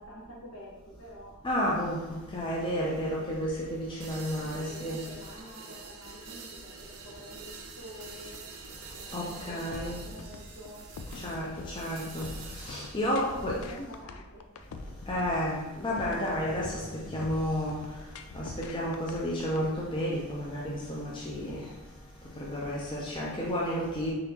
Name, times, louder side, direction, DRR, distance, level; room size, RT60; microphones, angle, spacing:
voice 1, 0.0-1.3 2.7-3.2 4.3-8.4 8.9-10.9 13.0-14.6, equal, 65° left, -5 dB, 1.5 m, -47 dB
voice 2, 1.4-2.0 2.3-5.0 9.1-10.0 11.2-11.5 11.8-12.3 12.6-13.5 15.1-16.8 17.1-17.8 18.3-21.6 22.4-24.1, equal, 20° left, -4 dB, 0.5 m, -31 dB
sound 1, 4.0-13.8, right 4 dB, 80° right, 0.6 m, -47 dB
sound 2, 9.7-19.6, left 3 dB, 85° left, 0.4 m, -43 dB
4.1 x 3.8 x 2.9 m, 1.1 s
head